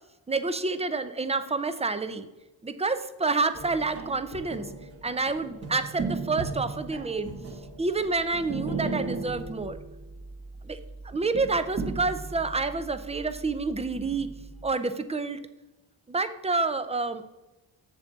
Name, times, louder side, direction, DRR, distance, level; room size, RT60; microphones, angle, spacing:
voice 1, 0.3-2.3 2.6-4.7 5.0-7.3 7.8-9.8 10.6-10.8 11.0-14.3 14.6-15.4 16.1-17.2, right 3 dB, 15° right, 12 dB, 0.6 m, -28 dB
sound 1, 3.5-14.7, right 3 dB, 30° right, 1.3 m, -37 dB
7.1 x 7.0 x 4.0 m, 1.0 s
cardioid pair, 80°, 49 cm